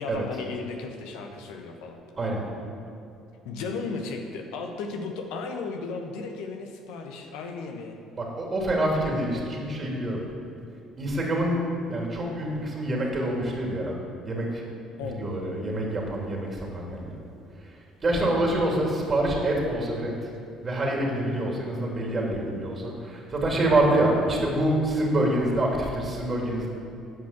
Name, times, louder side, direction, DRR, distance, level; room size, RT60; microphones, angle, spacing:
voice 1, 0.0-2.0 3.4-7.9 15.0-15.2 18.2-18.3, left 4 dB, 80° left, 3 dB, 1.1 m, -35 dB
voice 2, 8.2-10.3 11.0-11.6 11.9-13.9 14.2-14.6 15.0-17.2 17.5-20.3 20.6-26.7, right 1 dB, 35° right, -2 dB, 2.7 m, -26 dB
9.8 x 5.3 x 7.3 m, 2.5 s
supercardioid pair, 70°, 0 cm